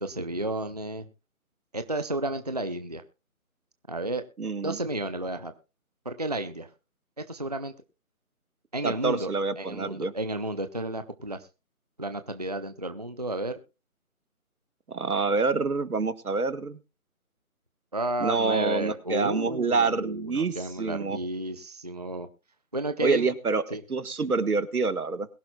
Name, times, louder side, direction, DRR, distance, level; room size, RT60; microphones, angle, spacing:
voice 1, 0.0-1.1 1.7-3.0 3.9-4.3 4.6-5.5 6.0-6.7 7.2-7.7 8.7-11.5 12.0-13.6 17.9-22.3 22.7-23.3 23.7-23.8, right 1 dB, 30° right, 9 dB, 0.6 m, -32 dB
voice 2, 4.4-4.8 8.8-10.1 14.9-16.8 18.2-21.2 23.0-23.6 23.9-25.3, right 4 dB, 85° right, 12 dB, 1.5 m, -27 dB
21.5 x 11.5 x 2.3 m, 0.30 s
figure-of-eight pair, 165°, 43 cm